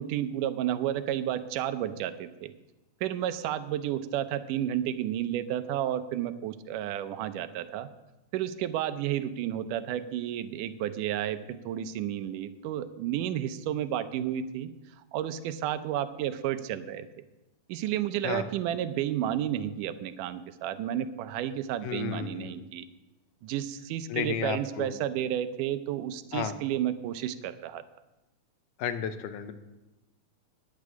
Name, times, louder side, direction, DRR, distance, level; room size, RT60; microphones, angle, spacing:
voice 1, 0.0-2.5 3.0-7.9 8.3-14.7 15.1-17.1 17.7-22.9 23.4-27.8, right 11 dB, 80° right, 11 dB, 2.2 m, -31 dB
voice 2, 21.8-22.6 24.1-25.0 26.3-26.5 28.8-29.5, left 8 dB, 85° left, 11 dB, 2.4 m, -33 dB
9.4 x 8.5 x 9.4 m, 1.0 s
omnidirectional pair, 3.7 m